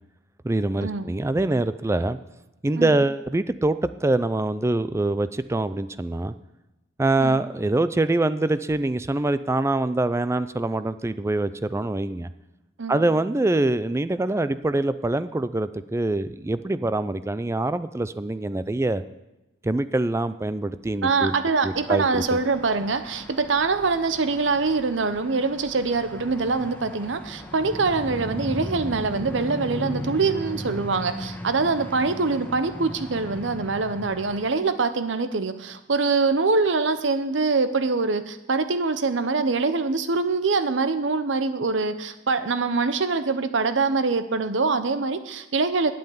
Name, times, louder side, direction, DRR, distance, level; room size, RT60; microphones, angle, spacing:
voice 1, 0.4-2.2 2.6-6.3 7.0-12.3 12.9-19.0 19.6-21.3 21.6-22.4, right 2 dB, 15° right, 13 dB, 0.4 m, -24 dB
voice 2, 21.0-45.9, right 4 dB, 70° right, 11 dB, 0.8 m, -24 dB
sound 1, 21.7-34.5, left 1 dB, 10° left, 1.2 m, -37 dB
8.7 x 7.9 x 9.1 m, 0.99 s
head